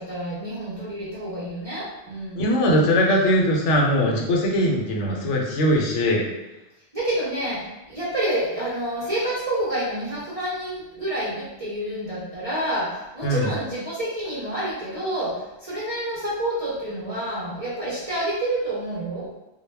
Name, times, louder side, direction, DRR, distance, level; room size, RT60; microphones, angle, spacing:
voice 1, 0.0-2.4 6.9-19.3, right 1 dB, 45° right, -7 dB, 0.5 m, -28 dB
voice 2, 2.3-6.2 13.2-13.5, equal, 80° left, -1 dB, 0.9 m, -20 dB
2.2 x 2.1 x 3.2 m, 0.95 s
omnidirectional pair, 1.2 m